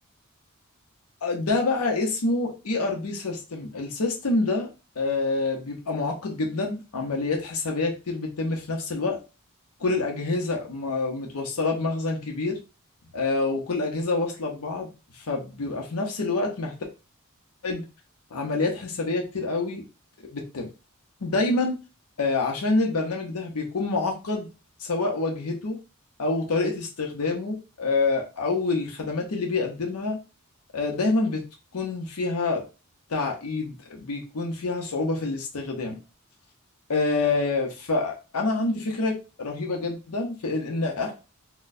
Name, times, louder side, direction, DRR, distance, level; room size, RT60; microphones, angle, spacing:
voice 1, 1.2-4.7 5.0-9.2 9.8-12.6 13.1-14.9 15.1-16.7 17.6-17.8 18.3-19.8 20.3-20.7 21.2-21.8 22.2-24.5 24.8-25.8 26.2-30.2 30.7-31.4 31.7-32.6 33.1-36.0 36.9-41.1, left 3 dB, 90° left, 1 dB, 0.7 m, -27 dB
4.0 x 2.2 x 2.6 m, 0.30 s
head